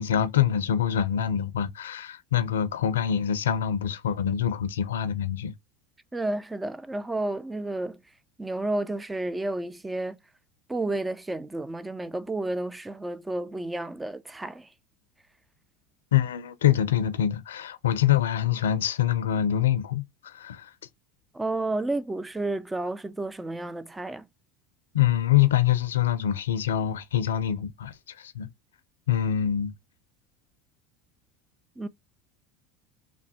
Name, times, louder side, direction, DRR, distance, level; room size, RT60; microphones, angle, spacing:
voice 1, 0.0-5.5 16.1-20.7 24.9-28.5 29.1-29.7, left 10 dB, 85° left, 0.4 m, -25 dB
voice 2, 6.1-8.0 8.4-10.2 10.7-14.7 21.3-24.3 31.8-31.9, right 2 dB, 10° right, 0.4 m, -31 dB
3.1 x 2.1 x 2.8 m
hypercardioid pair, 85°, 0 cm